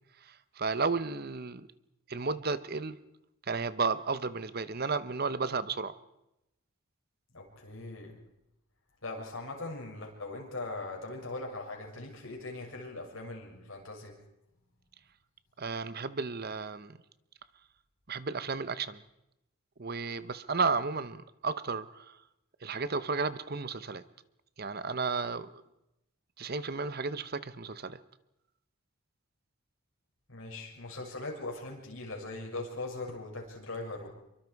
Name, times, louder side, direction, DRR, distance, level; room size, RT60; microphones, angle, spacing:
voice 1, 0.2-1.7 2.1-3.0 3.5-6.0 15.6-17.0 18.1-19.0 19.8-22.2 22.6-24.0 24.6-25.5 26.4-28.0, right 4 dB, 45° right, 14 dB, 0.8 m, -33 dB
voice 2, 7.3-8.2 9.0-14.2 30.3-34.2, left 2 dB, 65° left, 1 dB, 6.6 m, -40 dB
27.0 x 24.0 x 4.7 m, 0.88 s
head